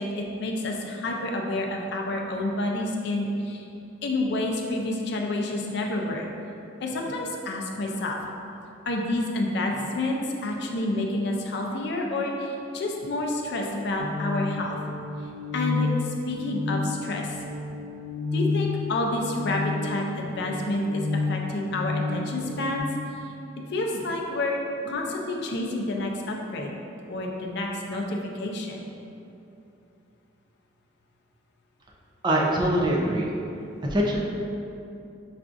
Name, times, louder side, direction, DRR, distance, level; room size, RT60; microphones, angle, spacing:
voice 1, 0.0-3.7 4.0-6.3 6.8-8.2 8.9-14.8 15.5-17.3 18.3-22.9 23.7-26.7 27.1-28.8, left 2 dB, 60° left, 0 dB, 0.4 m, -29 dB
sound 1, 14.0-22.8, left 4 dB, 50° right, 0.8 m, -31 dB
voice 2, 32.2-33.3 33.9-34.2, right 1 dB, 25° right, -3 dB, 0.4 m, -23 dB
5.7 x 2.5 x 2.4 m, 2.8 s
head